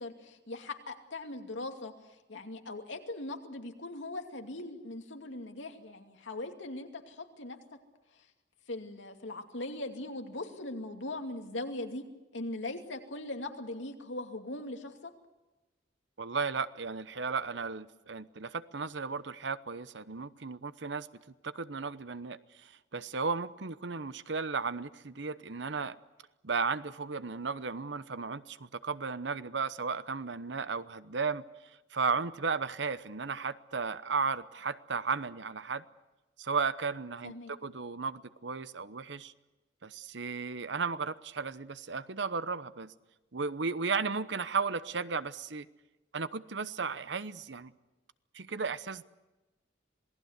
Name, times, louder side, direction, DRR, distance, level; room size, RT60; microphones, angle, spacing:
voice 1, 0.0-1.9 2.3-7.6 8.7-12.0 12.3-15.1 37.2-37.5, left 2 dB, 80° left, 5 dB, 2.7 m, -40 dB
voice 2, 16.2-21.1 21.4-26.0 26.4-31.4 31.9-35.8 36.4-39.3 39.8-42.9 43.3-45.7 46.1-47.7 48.3-49.0, right 5 dB, 70° right, 15 dB, 0.9 m, -34 dB
27.5 x 19.0 x 8.2 m, 1.1 s
head